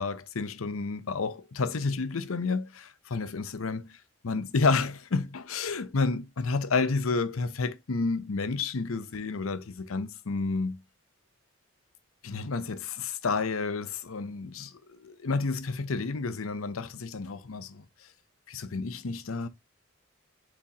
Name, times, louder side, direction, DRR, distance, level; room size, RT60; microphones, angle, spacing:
voice 1, 0.0-4.0 4.2-10.8 12.2-17.9 18.5-19.5, left 4 dB, 90° left, 0.7 m, -30 dB
7.0 x 5.1 x 2.8 m
head